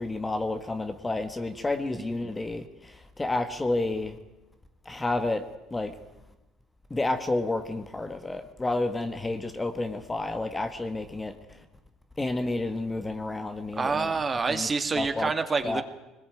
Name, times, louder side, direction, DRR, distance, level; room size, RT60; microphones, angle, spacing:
voice 1, 0.0-2.6 3.2-4.1 4.9-5.4 5.7-5.9 6.9-11.3 12.2-14.1 14.5-14.7 15.0-15.3 15.6-15.8, left 2 dB, 15° left, 9 dB, 1.6 m, -30 dB
voice 2, 1.9-2.3 13.8-15.8, right 4 dB, 25° right, 9 dB, 2.2 m, -28 dB
22.5 x 20.5 x 9.2 m, 1.0 s
cardioid pair, 110°, 0 cm